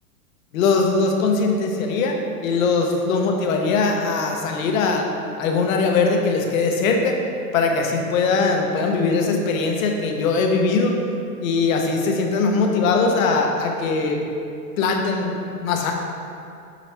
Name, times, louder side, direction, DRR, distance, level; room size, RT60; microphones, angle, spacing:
voice 1, 0.5-5.0 5.4-7.2 7.5-11.0 11.4-14.2 14.8-15.9, left 4 dB, 60° left, 2 dB, 1.0 m, -21 dB
7.6 x 4.2 x 3.4 m, 2.6 s
supercardioid pair, 150°, 47 cm